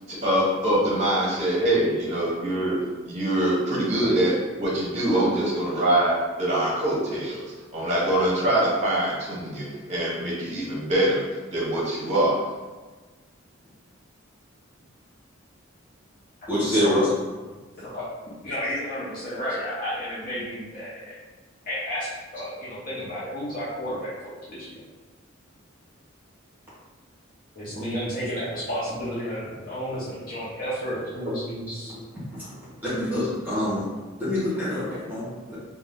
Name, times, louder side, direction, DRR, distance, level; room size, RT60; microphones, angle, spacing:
voice 1, 0.1-2.8 3.1-7.4 7.7-11.2 11.5-12.4, right 1 dB, 35° right, -4 dB, 0.8 m, -24 dB
voice 2, 16.5-17.0 32.3-32.4 32.8-33.8 34.2-35.6, equal, 10° right, -11 dB, 1.0 m, -25 dB
voice 3, 18.4-21.2 21.6-24.8 27.5-31.9 33.2-33.3, equal, 45° left, -10 dB, 0.7 m, -32 dB
2.6 x 2.2 x 3.4 m, 1.3 s
head